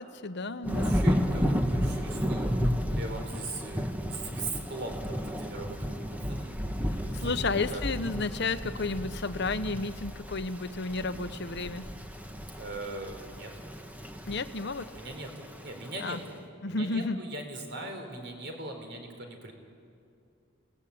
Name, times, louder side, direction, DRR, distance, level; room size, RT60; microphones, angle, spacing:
voice 1, 0.0-1.0 7.1-11.9 14.3-14.9 16.0-16.2 16.6-17.2, left 3 dB, 55° left, 11 dB, 1.0 m, -32 dB
Thunder / Rain, 0.6-16.2, equal, 5° right, 1.2 m, -33 dB
voice 2, 0.8-2.5 2.9-6.6 7.0-7.8 11.3-11.9 12.5-13.5 14.9-16.3 16.7-19.5, right 2 dB, 50° right, 4 dB, 3.9 m, -40 dB
30.0 x 19.0 x 8.7 m, 2.5 s
head